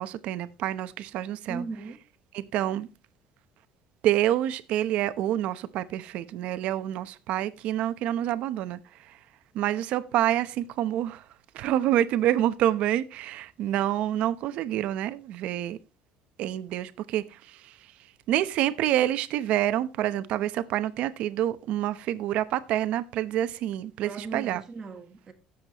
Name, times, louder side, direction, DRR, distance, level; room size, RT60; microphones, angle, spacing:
voice 1, 0.0-1.6 2.3-2.9 4.0-8.8 9.1-9.2 9.5-11.2 11.5-15.8 16.4-17.7 18.3-24.6, right 12 dB, 55° right, 0.8 m, -27 dB
voice 2, 1.5-2.0 24.0-25.3, right 4 dB, 25° right, 1.2 m, -37 dB
17.0 x 7.3 x 3.0 m
cardioid pair, 165°, 2 cm